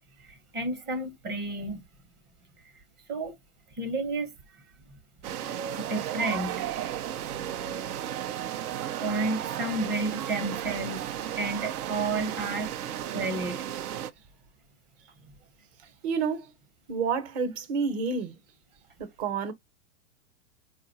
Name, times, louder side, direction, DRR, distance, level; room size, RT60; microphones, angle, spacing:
voice 1, 0.3-1.8 3.1-3.3 3.7-4.3 5.8-6.6 9.0-11.0 11.4-12.7 13.1-13.7, right 2 dB, 25° right, 0.9 m, -31 dB
sound 1, 5.2-14.1, right 11 dB, 70° right, 0.8 m, -34 dB
voice 2, 16.0-16.5 16.9-18.3 19.0-19.5, right 5 dB, 40° right, 1.1 m, -29 dB
4.8 x 2.4 x 2.6 m
supercardioid pair, 150°, 46 cm